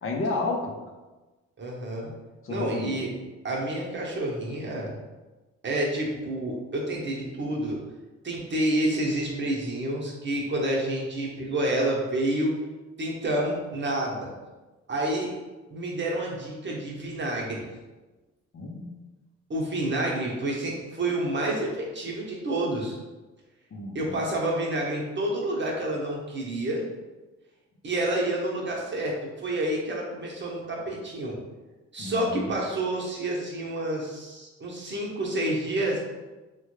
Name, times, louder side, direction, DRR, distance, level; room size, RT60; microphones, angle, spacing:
voice 1, 0.0-0.8 2.4-3.0 18.5-18.9 23.7-24.2 32.0-32.5, left 2 dB, 45° left, 0 dB, 0.6 m, -31 dB
voice 2, 1.6-2.1 2.5-3.1 3.4-4.9 5.6-7.8 8.2-12.5 13.0-14.3 14.9-15.3 15.7-17.7 19.5-22.9 23.9-26.8 27.8-31.4 31.9-36.0, right 1 dB, 40° right, -3 dB, 0.9 m, -29 dB
3.3 x 2.2 x 3.1 m, 1.2 s
cardioid pair, 70°, 30 cm